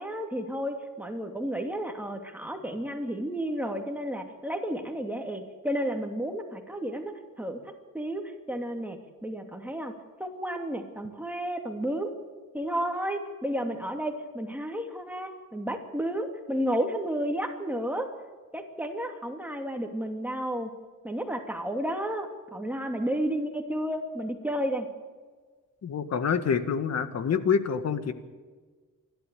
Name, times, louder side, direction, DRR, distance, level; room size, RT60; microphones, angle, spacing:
voice 1, 0.0-9.9 10.2-12.1 12.5-18.1 18.5-20.7 21.0-24.9, equal, 5° right, 3 dB, 2.6 m, -32 dB
voice 2, 25.8-28.1, left 6 dB, 55° left, 11 dB, 1.8 m, -26 dB
27.0 x 12.5 x 8.4 m, 1.5 s
cardioid pair, 105°, 32 cm